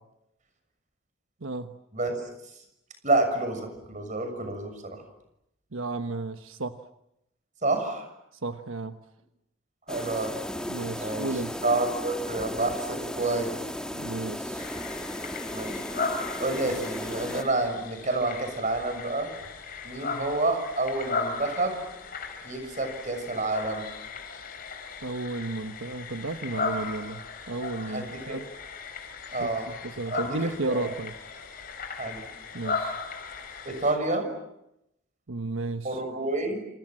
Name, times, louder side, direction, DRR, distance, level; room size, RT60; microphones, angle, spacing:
voice 1, 1.4-1.8 5.7-6.8 8.4-9.0 10.7-11.5 13.9-14.7 25.0-28.4 29.4-29.5 29.8-31.1 32.5-33.0 35.3-36.0, right 2 dB, 85° right, 8 dB, 1.2 m, -33 dB
voice 2, 1.9-2.3 3.0-5.0 7.6-8.1 9.9-10.4 11.0-13.7 15.5-15.8 16.4-19.3 19.8-21.8 22.4-23.9 27.8-28.4 29.3-29.8 30.1-30.9 31.9-32.3 33.6-34.4 35.8-36.7, right 2 dB, 40° right, 7 dB, 6.5 m, -29 dB
sound 1, 9.9-17.4, equal, 5° left, 1.6 m, -35 dB
sound 2, 14.6-34.0, left 4 dB, 45° left, 4.7 m, -37 dB
28.5 x 27.5 x 7.7 m, 0.83 s
head